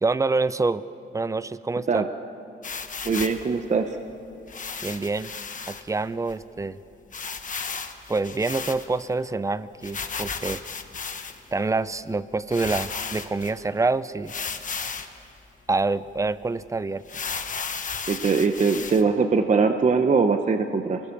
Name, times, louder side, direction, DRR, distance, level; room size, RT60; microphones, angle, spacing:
voice 1, 0.0-0.8 1.1-2.0 4.8-5.3 5.7-6.8 8.1-10.6 11.5-14.3 15.7-17.0, right 3 dB, 15° right, 15 dB, 0.5 m, -26 dB
sound 1, 2.6-3.4 4.5-5.8 6.3-6.4 6.6-6.7 7.1-9.1 9.8-11.5 12.1-12.2 12.5-13.5 14.3-15.2 15.7-15.8 16.2-16.3 17.1-19.0, left 5 dB, 40° left, 1.2 m, -34 dB
voice 2, 3.0-4.0 18.1-21.0, right 4 dB, 35° right, 7 dB, 0.8 m, -22 dB
28.5 x 20.0 x 7.2 m, 2.9 s
wide cardioid pair, 165°, 21 cm